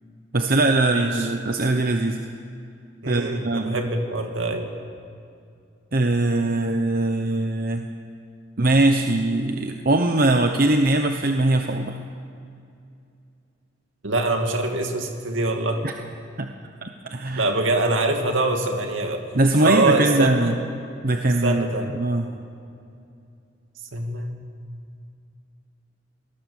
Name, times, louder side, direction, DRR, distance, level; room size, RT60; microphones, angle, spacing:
voice 1, 0.3-2.2 3.0-3.8 5.9-7.8 8.6-12.0 15.8-15.9 16.4-16.5 16.8-17.5 19.3-20.5 21.0-22.3, right 2 dB, 45° right, 5 dB, 1.0 m, -21 dB
voice 2, 0.9-1.3 3.0-4.7 14.0-15.8 17.4-19.2 19.6-20.5 21.4-21.9 23.9-24.3, right 2 dB, 75° right, 4 dB, 2.5 m, -24 dB
26.0 x 19.5 x 7.3 m, 2.5 s
head